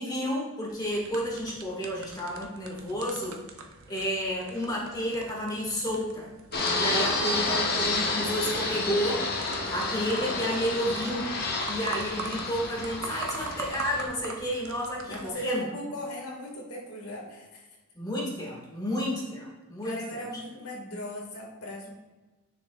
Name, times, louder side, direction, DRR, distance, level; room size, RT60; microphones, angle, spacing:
voice 1, 0.0-3.4 3.9-6.3 6.7-9.3 9.7-11.3 11.7-15.7 17.9-20.2, equal, 20° left, -3 dB, 2.0 m, -31 dB
sound 1, 0.7-15.3, right 4 dB, 75° right, 0.8 m, -43 dB
Fixed-wing aircraft airplane, 6.5-14.0, left 2 dB, 45° left, 1.3 m, -30 dB
voice 2, 15.0-17.7 19.8-21.9, left 1 dB, 85° left, -1 dB, 2.1 m, -39 dB
10.0 x 6.2 x 2.5 m, 1.2 s
head